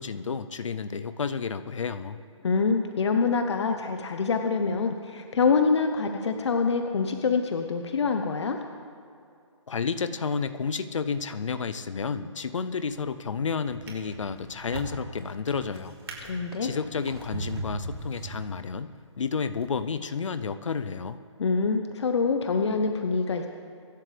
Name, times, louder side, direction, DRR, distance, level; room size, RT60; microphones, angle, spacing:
voice 1, 0.0-2.2 9.7-15.9 16.6-21.2, left 5 dB, 80° left, 11 dB, 0.7 m, -31 dB
voice 2, 2.4-8.6 16.2-16.7 21.4-23.5, left 4 dB, 60° left, 5 dB, 1.0 m, -25 dB
Drawer open or close, 12.7-13.1 13.7-18.8 19.5-19.7, right 2 dB, 50° right, 3.3 m, -39 dB
24.5 x 11.5 x 3.4 m, 2.5 s
hypercardioid pair, 155°, 16 cm